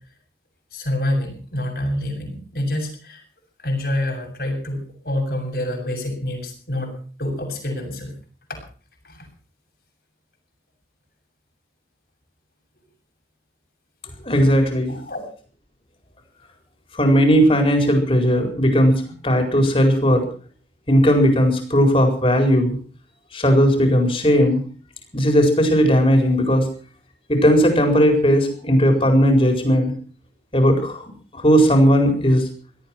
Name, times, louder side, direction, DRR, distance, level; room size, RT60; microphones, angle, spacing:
voice 1, 0.7-3.2 3.6-6.9 7.2-8.1 8.5-8.6 9.0-9.3 14.9-15.2, left 1 dB, 60° left, 1 dB, 7.3 m, -27 dB
voice 2, 14.3-15.0 17.0-20.2 20.9-22.7 23.3-24.6 25.1-26.7 27.3-29.9 30.5-31.0 31.3-32.4, equal, 30° left, 4 dB, 4.5 m, -17 dB
18.0 x 13.5 x 6.1 m, 0.42 s
head